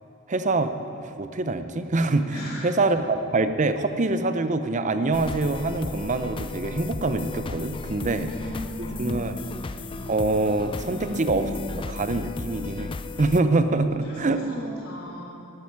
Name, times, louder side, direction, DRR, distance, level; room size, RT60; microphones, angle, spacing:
voice 1, 0.3-0.7 1.0-8.3 9.0-9.4 10.1-11.4 11.9-12.9 13.2-14.4, right 2 dB, 35° right, 9 dB, 0.6 m, -25 dB
voice 2, 2.3-2.8 8.0-9.3 10.8-11.9 13.9-15.4, equal, 80° left, -6 dB, 2.9 m, -36 dB
sound 1, 5.1-13.4, left 3 dB, 25° left, 0.3 m, -35 dB
12.5 x 11.5 x 4.7 m, 2.8 s
head